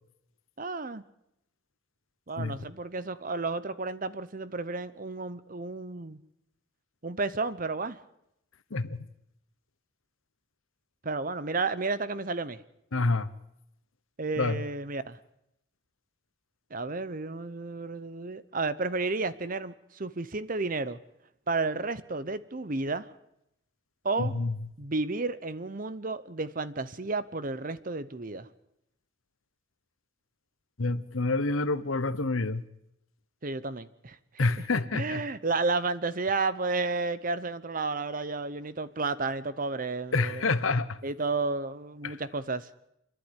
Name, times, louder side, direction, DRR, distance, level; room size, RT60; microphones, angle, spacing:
voice 1, 0.6-1.0 2.3-6.2 7.0-8.0 11.0-12.6 14.2-15.2 16.7-21.0 21.5-23.1 24.0-24.3 24.8-28.5 33.4-34.4 34.9-40.5 41.0-42.7, right 3 dB, 40° right, 0.9 m, -32 dB
voice 2, 12.9-13.3 14.4-14.6 24.2-24.5 30.8-32.6 34.4-35.2 40.1-41.0 42.0-42.2, left 3 dB, 80° left, 1.1 m, -28 dB
28.5 x 11.0 x 10.0 m
head